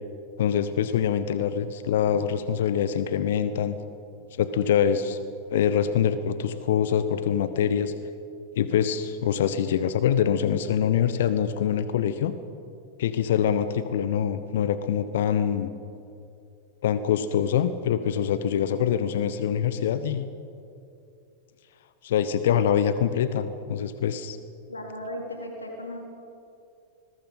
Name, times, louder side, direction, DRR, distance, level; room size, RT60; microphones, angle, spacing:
voice 1, 0.4-3.8 4.4-5.2 5.5-7.9 8.6-12.4 13.0-15.7 16.8-20.3 22.0-24.4, left 8 dB, 60° left, 13 dB, 0.9 m, -24 dB
voice 2, 24.7-26.0, equal, 80° left, 1 dB, 3.8 m, -36 dB
26.5 x 21.5 x 5.7 m, 2.6 s
figure-of-eight pair, 90°, 0 cm